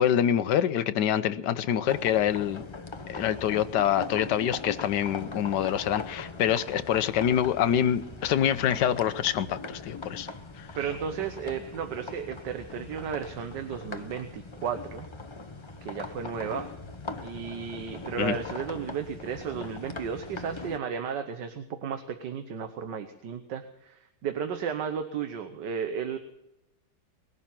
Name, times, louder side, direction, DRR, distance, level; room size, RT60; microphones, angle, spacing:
voice 1, 0.0-2.6 3.1-10.3 10.6-10.7 18.2-18.4, left 10 dB, 75° left, 12 dB, 1.4 m, -26 dB
sound 1, 1.9-20.8, left 3 dB, 30° left, 0.5 m, -41 dB
voice 2, 10.8-15.1 15.8-16.7 17.2-26.2, right 7 dB, 80° right, 7 dB, 1.7 m, -34 dB
20.5 x 11.5 x 5.9 m, 0.88 s
omnidirectional pair, 1.9 m